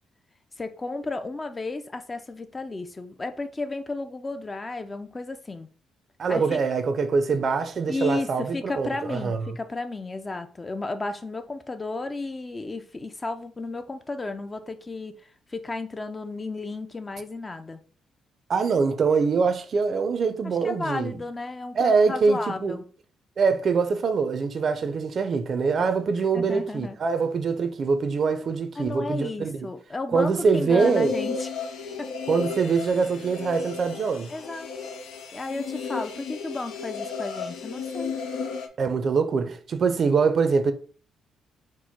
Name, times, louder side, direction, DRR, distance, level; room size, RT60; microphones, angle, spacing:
voice 1, 0.6-5.7 6.3-6.6 7.9-15.2 15.5-17.8 20.4-22.8 26.3-27.0 28.8-31.5 32.0-32.1 34.3-34.7 35.3-38.2, left 3 dB, 25° left, 0.5 m, -33 dB
voice 2, 6.2-9.6 18.5-21.2 21.7-22.8 23.4-29.6 30.1-31.1 32.3-34.3 38.8-40.7, right 5 dB, 50° right, 0.5 m, -24 dB
sound 1, 30.8-38.7, left 5 dB, 85° left, 0.6 m, -33 dB
4.4 x 2.1 x 4.4 m
cardioid pair, 90°, 0 cm